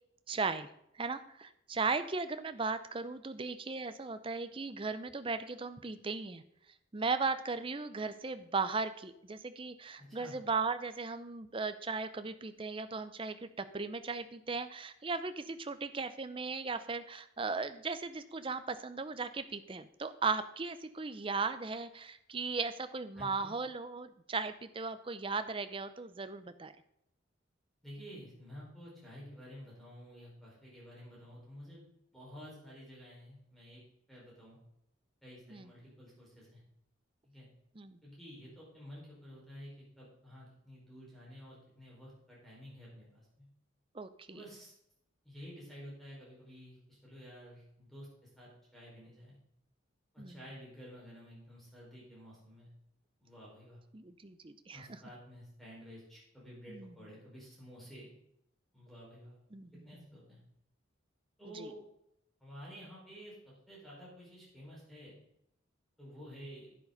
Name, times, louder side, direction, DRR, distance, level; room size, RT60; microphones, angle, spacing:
voice 1, 0.3-0.7 1.0-6.4 6.9-26.7 35.5-35.7 37.8-38.0 43.9-44.4 50.2-50.4 53.9-54.9 56.7-56.9 59.5-60.0 61.6-61.7, right 4 dB, 25° right, 11 dB, 0.5 m, -37 dB
voice 2, 10.0-10.3 23.1-23.5 27.8-31.8 32.1-33.8 34.1-34.6 35.2-36.6 37.2-37.5 38.0-43.4 44.3-44.7 45.2-49.4 50.1-52.7 53.2-53.8 54.7-58.1 58.7-59.4 59.8-60.4 61.4-61.8 62.4-63.4 63.7-65.1 66.0-66.7, equal, ahead, -6 dB, 5.0 m, -51 dB
11.0 x 9.7 x 4.0 m, 0.77 s
head